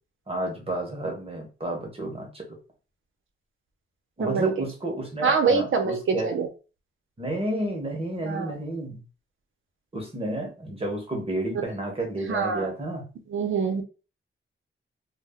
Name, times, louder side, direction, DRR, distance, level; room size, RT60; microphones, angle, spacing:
voice 1, 0.3-2.5 4.2-6.3 7.2-9.0 9.9-13.0, right 1 dB, 30° right, 1 dB, 0.8 m, -31 dB
voice 2, 4.2-4.5 5.2-6.5 8.3-8.6 12.3-12.7 13.3-13.8, right 5 dB, 70° right, 5 dB, 0.6 m, -24 dB
2.2 x 2.1 x 3.5 m, 0.33 s
wide cardioid pair, 165°, 21 cm